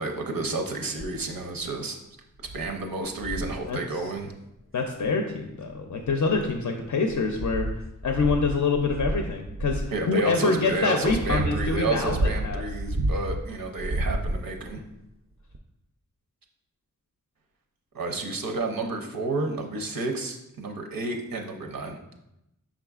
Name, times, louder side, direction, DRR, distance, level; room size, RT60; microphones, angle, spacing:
voice 1, 0.0-2.0 2.5-4.3 9.9-14.8 17.9-22.0, right 2 dB, 80° right, 3 dB, 0.6 m, -30 dB
sound 1, 1.0-1.3 1.9-2.0 2.4-2.7 3.2-3.6 5.0-5.1 5.9-6.6 7.1-9.9 10.7-13.4 13.8-14.7 15.5-15.6, right 1 dB, 40° right, 0.4 m, -30 dB
voice 2, 3.6-4.0 4.7-7.7 8.0-12.6, left 4 dB, 60° left, 4 dB, 0.4 m, -26 dB
5.5 x 3.7 x 2.3 m, 0.88 s
wide cardioid pair, 60°, 34 cm